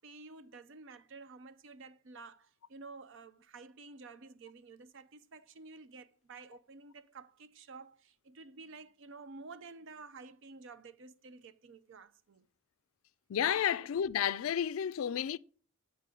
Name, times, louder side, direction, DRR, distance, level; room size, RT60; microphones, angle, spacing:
voice 1, 0.0-12.5 13.7-13.9, right 4 dB, 60° right, 0.5 m, -51 dB
voice 2, 13.3-15.4, left 9 dB, 70° left, 0.3 m, -31 dB
9.0 x 4.6 x 3.7 m
head